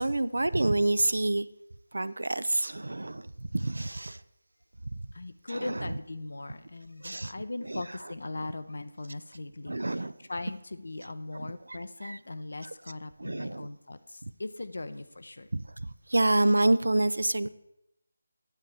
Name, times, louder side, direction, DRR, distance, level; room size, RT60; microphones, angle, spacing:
voice 1, 0.0-1.5 1.9-4.2 4.9-5.1 5.5-5.9 7.0-7.3 7.7-7.8 9.7-10.1 11.3-11.5 12.0-12.2 13.2-13.7 15.5-17.5, right 2 dB, 85° right, 16 dB, 0.5 m, -28 dB
voice 2, 5.1-15.5, left 2 dB, 75° left, 12 dB, 0.7 m, -39 dB
8.8 x 7.3 x 4.8 m, 0.84 s
figure-of-eight pair, 165°, 0 cm